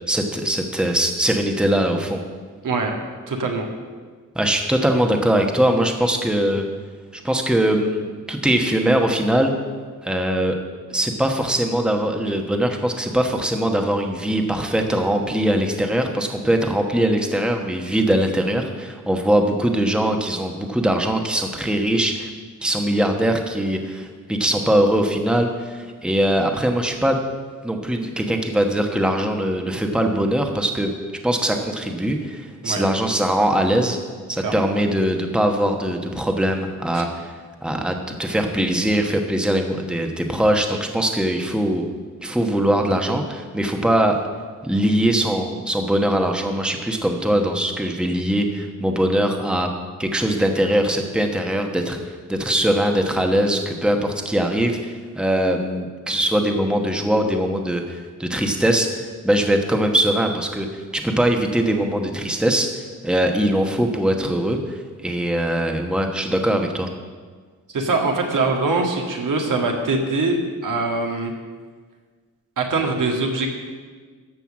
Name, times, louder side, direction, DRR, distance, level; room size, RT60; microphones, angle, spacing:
voice 1, 0.1-2.2 4.3-6.6 7.1-9.5 10.0-10.6 10.9-22.3 22.6-27.2 27.6-30.9 31.2-34.0 34.3-37.3 37.6-41.8 42.2-44.2 44.6-49.7 50.0-52.0 52.3-66.9, right 1 dB, 5° right, 3 dB, 1.1 m, -21 dB
voice 2, 3.3-3.7 32.6-32.9 34.4-34.6 36.9-37.1 67.7-71.3 72.6-73.5, right 3 dB, 75° right, 2 dB, 1.9 m, -23 dB
13.5 x 5.5 x 7.4 m, 1.5 s
wide cardioid pair, 100°, 32 cm